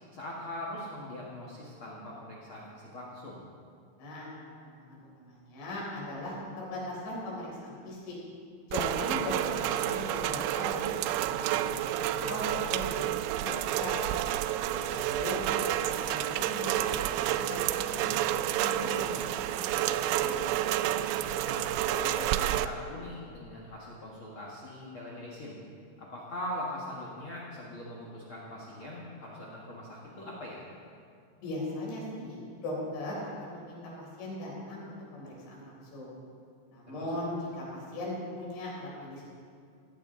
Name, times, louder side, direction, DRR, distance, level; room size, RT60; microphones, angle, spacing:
voice 1, 0.1-3.4 14.7-15.1 21.4-25.6 26.0-30.6 36.9-37.1, left 1 dB, 65° left, -4 dB, 1.3 m, -41 dB
voice 2, 4.0-4.3 4.6-8.2 8.7-11.0 11.3-13.9 14.7-17.0 17.3-18.2 18.6-19.8 20.1-20.5 31.4-36.1 36.7-39.3, left 1 dB, 90° left, -5 dB, 6.3 m, -39 dB
Rain, 8.7-22.7, right 12 dB, 85° right, 2.6 m, -30 dB
17.5 x 15.0 x 3.8 m, 2.3 s
omnidirectional pair, 5.1 m